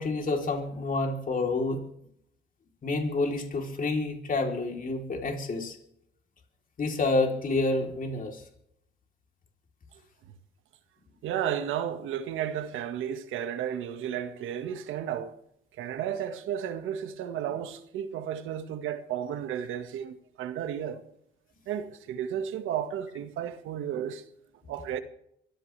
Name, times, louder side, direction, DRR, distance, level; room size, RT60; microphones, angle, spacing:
voice 1, 0.0-1.8 2.8-5.8 6.8-8.4, left 3 dB, 45° left, 3.6 m, -28 dB
voice 2, 11.2-15.3 15.8-21.0 21.7-24.2 24.7-25.0, right 9 dB, 90° right, 1.7 m, -33 dB
24.5 x 15.5 x 3.4 m
cardioid pair, 90°, 20 cm